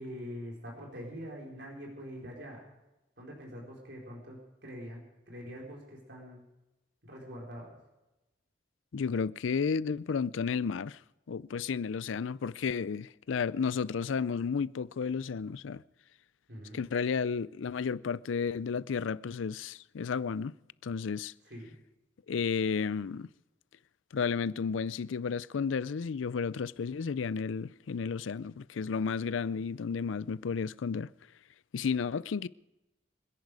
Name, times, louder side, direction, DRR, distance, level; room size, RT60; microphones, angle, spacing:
voice 1, 0.0-2.7 3.2-6.4 7.0-7.7 16.5-16.8 21.5-21.7, equal, 60° right, 4.5 m, -44 dB
voice 2, 8.9-11.0 11.3-15.8 16.7-20.5 20.8-21.3 22.3-23.3 24.1-31.1 31.7-32.5, left 5 dB, 90° left, 0.4 m, -32 dB
26.0 x 10.5 x 4.9 m
head